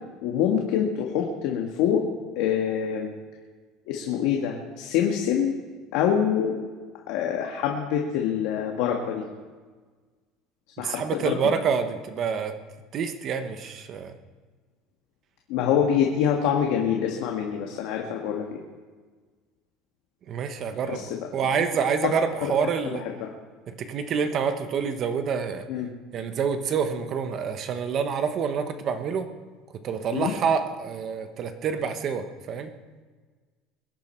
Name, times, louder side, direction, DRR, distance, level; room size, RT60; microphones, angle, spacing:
voice 1, 0.2-2.1 2.4-3.1 3.9-5.6 5.9-6.6 7.1-9.2 10.8-11.4 15.5-18.6 20.9-21.3 25.7-25.9 30.1-30.3, left 8 dB, 60° left, 1 dB, 1.6 m, -25 dB
voice 2, 10.8-12.6 12.9-14.1 20.3-23.0 23.7-25.7 26.1-29.3 29.7-32.7, right 6 dB, 30° right, 9 dB, 1.0 m, -27 dB
22.5 x 10.5 x 4.4 m, 1.4 s
cardioid pair, 175°, 0 cm